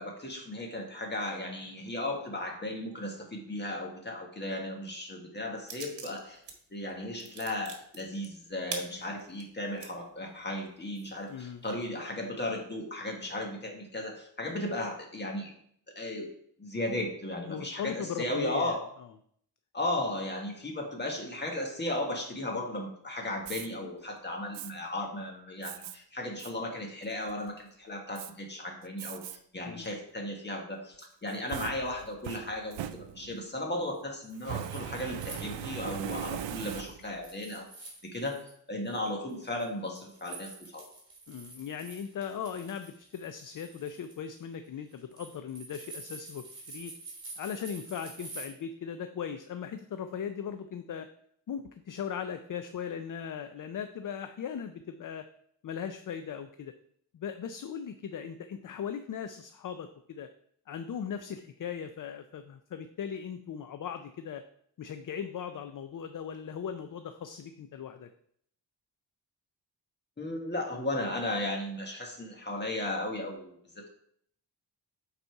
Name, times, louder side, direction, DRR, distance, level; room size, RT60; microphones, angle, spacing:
voice 1, 0.0-6.4 6.7-15.5 15.9-16.3 16.6-18.9 19.7-38.4 38.7-40.9 70.2-73.9, left 1 dB, 25° left, 1 dB, 1.6 m, -35 dB
sound 1, 5.7-6.6 6.9-9.9 10.4-10.5 10.9-11.8, right 5 dB, 70° right, 1.4 m, -42 dB
voice 2, 11.3-11.6 17.4-18.8 29.6-30.0 41.3-46.9 47.4-51.1 51.5-55.3 55.6-56.7 57.1-60.3 60.7-64.4 64.8-68.1, left 7 dB, 50° left, 9 dB, 0.5 m, -38 dB
Fire, 23.4-23.7 24.5-24.7 25.6-26.0 26.4-26.5 27.0-27.5 28.2-28.3 29.0-29.4 29.8-29.9 31.0-33.5 34.4-37.2, right 10 dB, 90° right, 0.6 m, -39 dB
sound 2, 34.2-36.3 36.6-38.5 38.9-48.5, right 3 dB, 30° right, 3.3 m, -48 dB
8.0 x 4.2 x 4.6 m, 0.66 s
wide cardioid pair, 125°, 43 cm